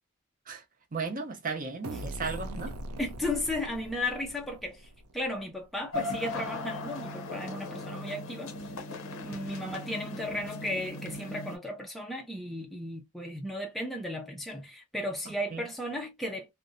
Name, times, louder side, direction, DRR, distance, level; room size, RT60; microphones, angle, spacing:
voice 1, 0.9-2.8 15.3-15.6, right 4 dB, 40° right, 0.7 m, -35 dB
sound 1, 1.8-5.5, right 1 dB, 90° right, 0.4 m, -41 dB
voice 2, 3.0-8.5 9.2-16.5, left 1 dB, ahead, 0.4 m, -35 dB
sound 2, 5.9-11.6, left 2 dB, 70° left, 0.6 m, -38 dB
2.6 x 2.0 x 2.4 m
head